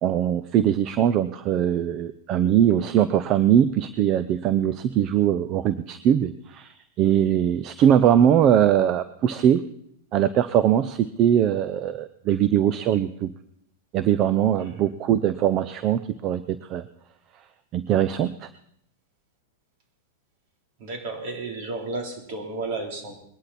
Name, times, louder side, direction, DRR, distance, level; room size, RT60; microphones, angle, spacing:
voice 1, 0.0-9.6 10.1-13.3 13.9-16.8 17.7-18.5, right 10 dB, 40° right, 14 dB, 0.6 m, -21 dB
voice 2, 14.6-14.9 20.8-23.2, right 3 dB, 55° right, 3 dB, 3.8 m, -33 dB
20.5 x 11.5 x 4.3 m, 0.71 s
hypercardioid pair, 120°, 0 cm